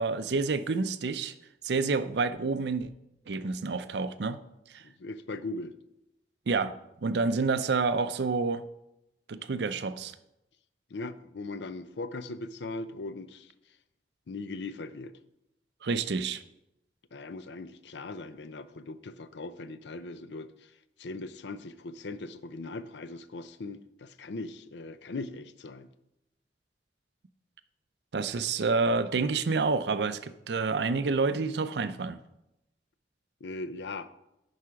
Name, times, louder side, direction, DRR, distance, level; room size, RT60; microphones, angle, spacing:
voice 1, 0.0-1.3 1.6-2.9 3.3-4.4 4.7-4.8 6.5-6.7 7.0-8.7 9.3-10.1 15.8-16.4 28.1-32.2, right 4 dB, 75° right, 12 dB, 0.5 m, -28 dB
voice 2, 4.8-5.7 10.9-13.5 14.3-15.1 17.1-20.7 21.0-25.9 33.4-34.1, left 3 dB, 80° left, 13 dB, 0.5 m, -39 dB
9.5 x 4.9 x 5.8 m, 0.88 s
head